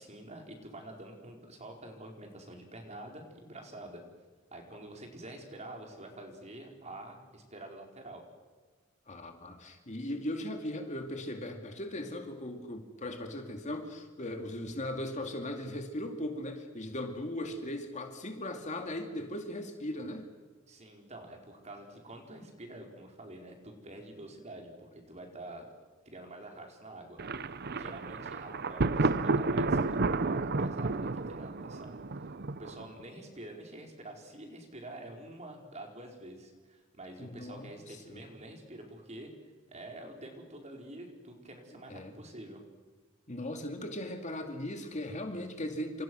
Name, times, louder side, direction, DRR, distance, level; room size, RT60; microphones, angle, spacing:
voice 1, 0.0-4.0 4.5-8.2 20.7-25.7 26.0-27.2 27.4-32.0 32.6-39.3 39.7-42.6, right 1 dB, 35° right, 2 dB, 4.6 m, -47 dB
voice 2, 9.1-20.3 37.2-38.2 41.9-42.1 43.3-46.0, left 1 dB, 35° left, 5 dB, 2.4 m, -38 dB
Thunder, 27.2-33.0, right 3 dB, 50° right, 0.8 m, -31 dB
28.5 x 27.0 x 6.3 m, 1.4 s
head